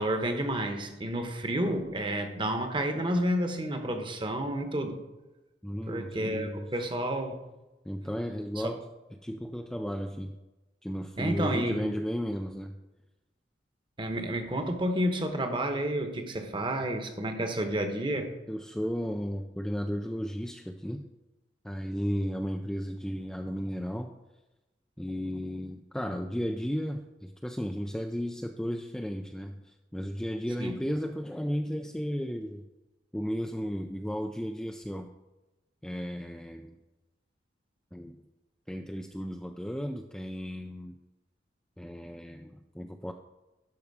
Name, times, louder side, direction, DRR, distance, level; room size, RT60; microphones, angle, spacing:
voice 1, 0.0-5.0 5.9-7.4 11.2-11.9 14.0-18.3 30.6-30.7, right 1 dB, 25° right, 6 dB, 1.0 m, -30 dB
voice 2, 5.6-6.9 7.9-8.8 9.2-10.4 10.8-12.8 18.5-21.0 21.6-24.1 25.0-32.6 33.1-35.1 35.8-36.8 37.9-38.2 38.7-40.9 41.8-43.1, equal, 5° left, 4 dB, 0.3 m, -34 dB
12.0 x 4.8 x 4.8 m, 1.0 s
head